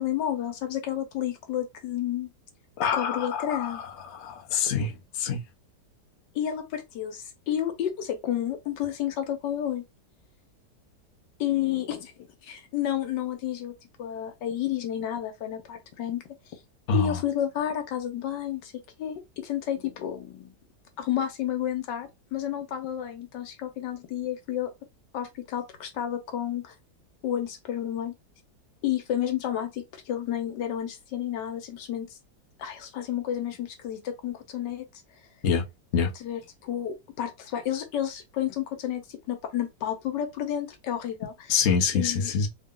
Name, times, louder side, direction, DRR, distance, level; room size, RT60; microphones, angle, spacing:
voice 1, 0.0-2.3 2.9-3.8 6.3-9.8 11.4-12.1 12.4-13.7 14.0-16.2 16.9-18.7 19.0-20.5 21.0-24.7 25.1-26.7 27.2-28.1 28.8-32.2 32.6-34.8 36.2-41.7 41.9-42.3, left 10 dB, 80° left, 1.5 m, -31 dB
voice 2, 2.8-5.4 16.9-17.2 35.4-35.6 35.9-36.1 41.5-42.5, left 6 dB, 50° left, 0.9 m, -26 dB
3.7 x 2.1 x 3.7 m
omnidirectional pair, 1.9 m